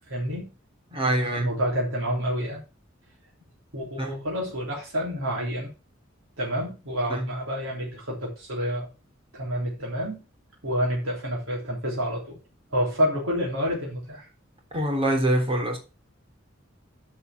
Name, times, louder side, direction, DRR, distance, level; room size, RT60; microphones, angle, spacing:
voice 1, 0.1-0.5 1.2-2.6 3.7-5.7 6.4-8.9 9.3-10.2 10.6-12.4 12.7-14.3, equal, 85° right, -4 dB, 3.6 m, -28 dB
voice 2, 0.9-1.5 4.0-4.1 7.1-7.2 14.7-15.8, right 1 dB, 30° right, 2 dB, 3.5 m, -24 dB
10.5 x 5.6 x 6.0 m, 0.30 s
head